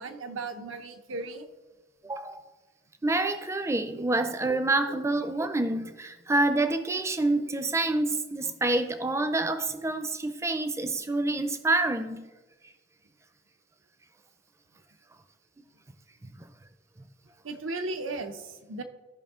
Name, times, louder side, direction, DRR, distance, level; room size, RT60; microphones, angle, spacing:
voice 1, 0.0-1.5 17.4-18.8, right 3 dB, 90° right, 0.8 m, -36 dB
voice 2, 2.0-2.4 3.0-12.3 16.2-16.5, right 2 dB, 15° right, 0.4 m, -27 dB
13.5 x 5.4 x 3.6 m
head